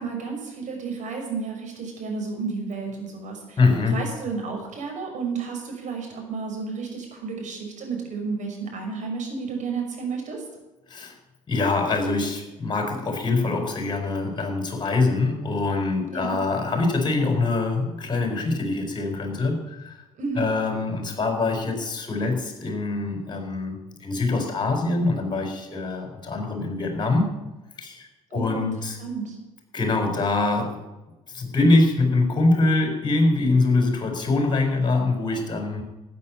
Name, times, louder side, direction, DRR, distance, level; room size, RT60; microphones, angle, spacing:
voice 1, 0.0-3.6 3.9-10.4 16.1-16.4 20.2-20.5 28.3-28.7 29.0-29.3, right 4 dB, 45° right, 2 dB, 6.1 m, -31 dB
voice 2, 3.6-4.0 10.9-11.1 11.5-20.0 20.3-27.3 27.8-29.0 29.7-30.8 31.3-35.8, left 3 dB, 25° left, 4 dB, 4.6 m, -24 dB
13.5 x 8.6 x 9.9 m, 1.1 s
figure-of-eight pair, 55°, 17 cm